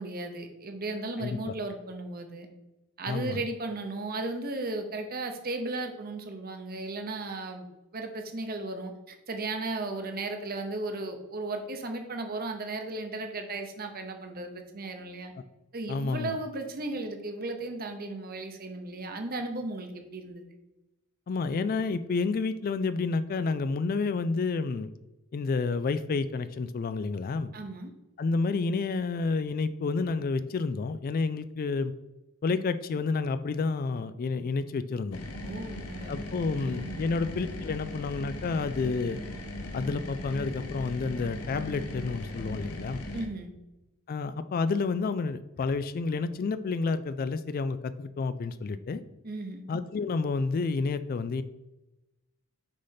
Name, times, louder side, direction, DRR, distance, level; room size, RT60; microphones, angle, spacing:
voice 1, 0.0-2.5 3.0-7.7 7.9-15.3 15.7-20.4 27.5-27.9 35.4-36.9 43.1-43.5 49.2-49.6, right 2 dB, 40° right, 5 dB, 0.9 m, -35 dB
voice 2, 3.1-3.4 15.9-16.3 21.3-24.9 25.3-27.5 28.2-31.9 32.4-35.2 36.1-39.2 39.7-43.0 44.1-49.0 49.7-51.4, left 4 dB, 40° left, 13 dB, 0.3 m, -30 dB
sound 1, 35.1-43.3, left 1 dB, 85° left, 1.0 m, -38 dB
6.4 x 4.1 x 5.7 m, 1.0 s
head